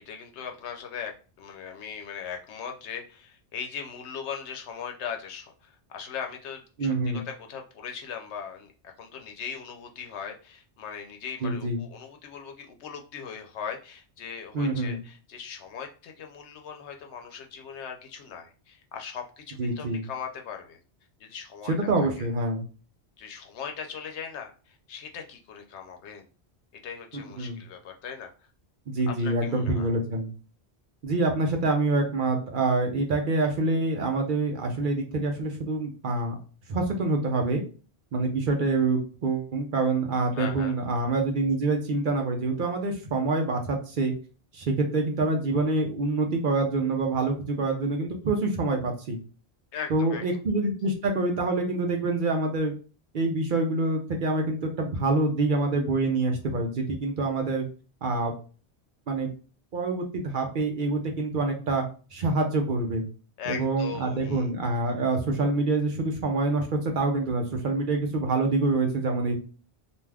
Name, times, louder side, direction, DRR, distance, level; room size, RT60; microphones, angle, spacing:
voice 1, 0.1-20.8 21.2-22.3 23.2-26.3 26.8-28.5 29.1-29.9 40.3-40.8 49.7-50.2 63.4-64.5, left 7 dB, 90° left, 4 dB, 0.9 m, -39 dB
voice 2, 6.8-7.2 11.4-11.8 14.5-15.0 19.6-20.0 21.7-22.6 27.4-27.6 28.9-30.3 31.0-36.3 36.7-37.6 38.1-44.1 44.5-49.2 49.9-52.7 53.1-57.7 58.0-58.3 59.1-59.3 59.7-61.8 62.1-63.0 63.5-69.4, right 3 dB, 55° right, 3 dB, 0.7 m, -26 dB
2.5 x 2.3 x 3.2 m, 0.36 s
omnidirectional pair, 1.1 m